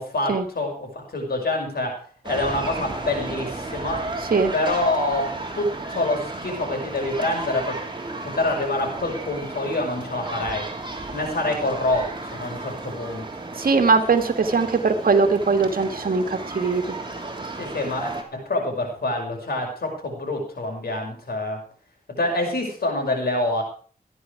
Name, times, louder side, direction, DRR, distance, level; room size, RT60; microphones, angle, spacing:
voice 1, 0.0-4.1 4.5-7.8 8.2-10.7 11.1-13.3 17.6-21.6 22.1-23.6, left 2 dB, 85° left, 1 dB, 5.7 m, -26 dB
sound 1, 2.2-18.2, right 2 dB, 30° right, 3.2 m, -34 dB
voice 2, 13.6-16.8, right 4 dB, 65° right, 7 dB, 1.9 m, -20 dB
15.0 x 11.5 x 4.8 m, 0.40 s
wide cardioid pair, 80°, 16 cm